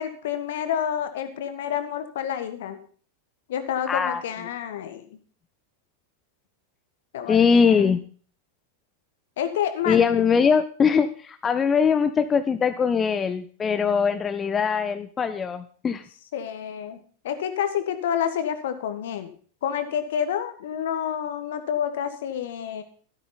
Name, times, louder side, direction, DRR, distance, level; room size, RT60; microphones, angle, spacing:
voice 1, 0.0-2.8 3.5-5.2 7.1-7.9 9.4-10.0 16.3-17.0 17.2-19.3 19.6-22.8, left 9 dB, 55° left, 11 dB, 1.6 m, -29 dB
voice 2, 3.9-4.2 7.3-8.0 9.9-16.0, left 6 dB, 20° left, 10 dB, 0.7 m, -21 dB
13.0 x 12.5 x 4.0 m, 0.43 s
figure-of-eight pair, 90°, 0 cm